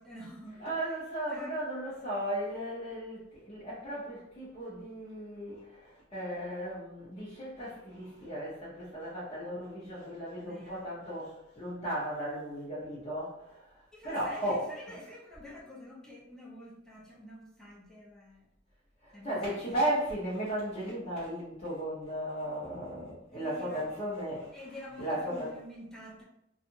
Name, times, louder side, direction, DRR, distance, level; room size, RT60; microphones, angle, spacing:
voice 1, 0.0-1.0 1.3-1.6 10.4-10.9 13.9-18.5 19.1-19.8 23.3-23.9 24.5-26.2, left 1 dB, 5° left, -6 dB, 0.8 m, -47 dB
voice 2, 0.6-14.6 19.0-24.5 25.0-25.5, right 1 dB, 30° left, -10 dB, 0.8 m, -36 dB
2.8 x 2.4 x 2.5 m, 0.82 s
head